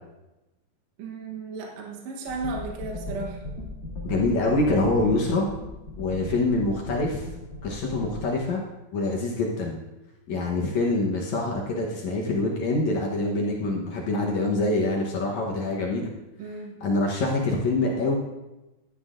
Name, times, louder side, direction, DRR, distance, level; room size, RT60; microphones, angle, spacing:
voice 1, 1.0-3.4 16.4-16.8, right 3 dB, 65° right, 0 dB, 1.7 m, -35 dB
sound 1, 2.3-8.2, left 2 dB, 35° left, 3.0 m, -37 dB
voice 2, 4.0-5.5 6.0-7.3 7.6-8.6 8.9-9.8 10.3-16.1 16.8-18.1, left 2 dB, 65° left, -2 dB, 1.9 m, -25 dB
15.5 x 11.5 x 2.5 m, 1.0 s
omnidirectional pair, 4.4 m